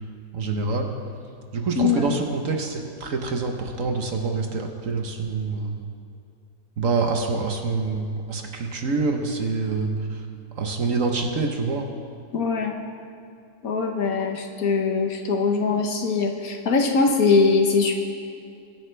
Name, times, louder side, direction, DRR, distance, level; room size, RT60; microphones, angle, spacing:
voice 1, 0.3-0.9 1.5-5.8 6.8-10.2 10.6-11.9, right 4 dB, 55° right, 3 dB, 1.4 m, -26 dB
voice 2, 1.8-2.1 12.3-12.8 13.6-18.0, left 4 dB, 65° left, 3 dB, 1.5 m, -22 dB
22.0 x 9.1 x 3.4 m, 2.5 s
omnidirectional pair, 1.7 m